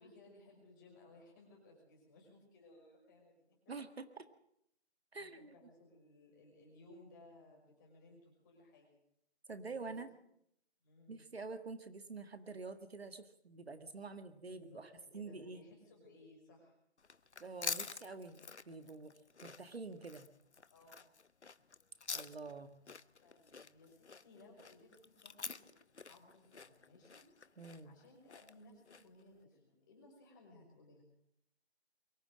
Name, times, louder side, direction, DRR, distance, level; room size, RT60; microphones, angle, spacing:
voice 1, 0.0-3.7 5.1-9.0 9.7-10.0 10.8-11.2 14.5-16.8 20.7-21.1 23.2-25.7 26.1-27.2 27.8-31.0, left 2 dB, 15° left, 0 dB, 5.5 m, -61 dB
voice 2, 3.7-4.2 5.1-5.5 9.5-10.1 11.1-15.6 17.4-19.1 19.4-20.3 22.1-22.7 27.6-28.0, right 3 dB, 65° right, 9 dB, 1.9 m, -47 dB
sound 1, 17.0-29.2, left 5 dB, 90° left, 1.1 m, -47 dB
23.5 x 14.5 x 7.7 m, 0.73 s
figure-of-eight pair, 165°, 33 cm